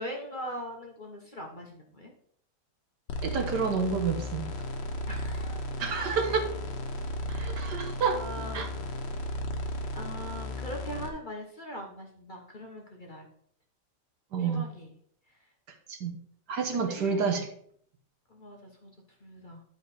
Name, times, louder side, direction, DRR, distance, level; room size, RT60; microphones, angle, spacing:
voice 1, 0.0-2.1 5.1-5.6 8.0-8.7 9.9-13.3 14.4-14.9 16.7-17.3 18.3-18.9 19.2-19.6, equal, 30° left, 0 dB, 1.2 m, -41 dB
sound 1, 3.1-11.1, left 1 dB, 90° left, 1.7 m, -35 dB
voice 2, 3.2-4.5 5.8-6.4 7.3-8.2 8.5-8.7 14.3-14.7 15.9-16.1 16.5-17.5, right 5 dB, 75° right, 5 dB, 1.7 m, -29 dB
10.5 x 5.0 x 4.2 m, 0.63 s
omnidirectional pair, 1.8 m